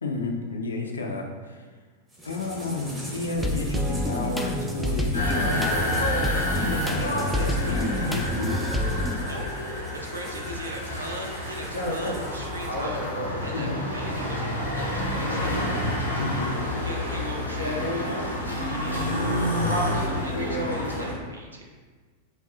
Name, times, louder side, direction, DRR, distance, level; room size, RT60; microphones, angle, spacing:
voice 1, 0.0-1.6 2.2-5.9 6.5-8.7 13.5-13.8 16.2-16.5, left 3 dB, 70° left, 3 dB, 0.4 m, -32 dB
sound 1, 2.1-12.8, equal, 20° right, 0.9 m, -42 dB
sound 2, 3.4-9.2, left 1 dB, 5° right, 0.3 m, -28 dB
sound 3, 5.1-21.1, left 1 dB, 90° left, 0.8 m, -28 dB
voice 2, 9.7-15.7 16.7-19.2 19.9-21.7, right 1 dB, 75° right, 0 dB, 0.6 m, -40 dB
5.3 x 2.3 x 2.5 m, 1.5 s
figure-of-eight pair, 90°, 0 cm